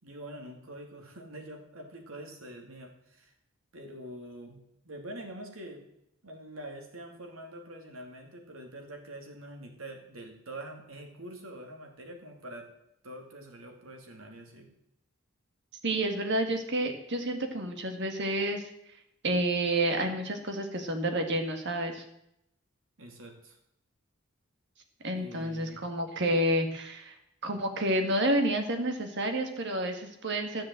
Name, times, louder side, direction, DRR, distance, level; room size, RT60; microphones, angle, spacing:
voice 1, 0.0-3.3 3.7-4.6 4.8-5.8 6.2-12.7 13.0-14.7 23.0-23.6 25.1-25.8, right 1 dB, 80° right, 2 dB, 2.7 m, -45 dB
voice 2, 15.8-18.7 19.2-22.0 25.0-27.1 27.4-30.6, right 1 dB, 55° right, 5 dB, 2.0 m, -29 dB
13.0 x 7.5 x 7.7 m, 0.79 s
head